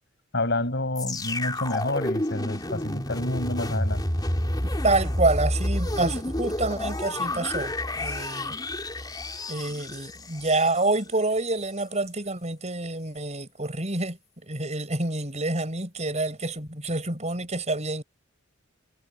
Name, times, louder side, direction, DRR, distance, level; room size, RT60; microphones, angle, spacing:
voice 1, 0.3-4.0, left 2 dB, 55° left, 6.8 m, -28 dB
sound 1, 1.0-11.0 11.6-11.7, left 1 dB, 20° left, 3.7 m, -30 dB
voice 2, 4.6-8.5 9.5-18.0, right 2 dB, 30° right, 5.8 m, -27 dB
head